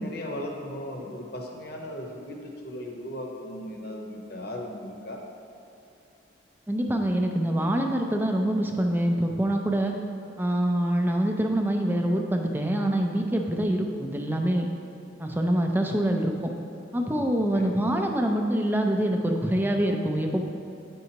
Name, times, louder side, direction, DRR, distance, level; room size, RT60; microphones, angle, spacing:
voice 1, 0.0-5.2 17.5-18.4, left 1 dB, 55° left, 1 dB, 0.8 m, -37 dB
voice 2, 6.7-9.9 10.4-14.7 15.2-16.5 16.9-20.4, right 1 dB, 10° right, 3 dB, 0.4 m, -25 dB
9.1 x 5.4 x 2.9 m, 2.8 s
head